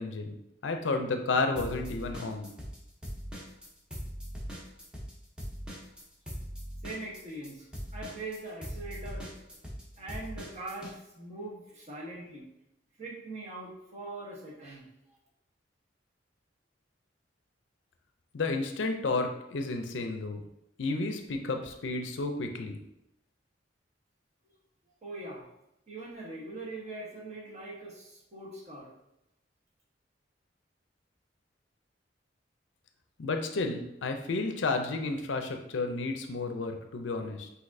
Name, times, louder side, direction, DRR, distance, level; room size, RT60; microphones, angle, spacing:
voice 1, 0.0-2.5 18.3-20.4 20.8-22.8 33.2-37.5, left 3 dB, 80° left, 5 dB, 0.5 m, -32 dB
sound 1, 1.6-2.8 3.0-10.9, equal, 5° right, 0.8 m, -40 dB
voice 2, 6.8-7.7 7.9-9.3 10.0-12.5 13.0-14.8 25.0-25.4 25.9-28.9, right 2 dB, 40° right, -4 dB, 1.2 m, -42 dB
5.8 x 2.8 x 2.6 m, 0.84 s
head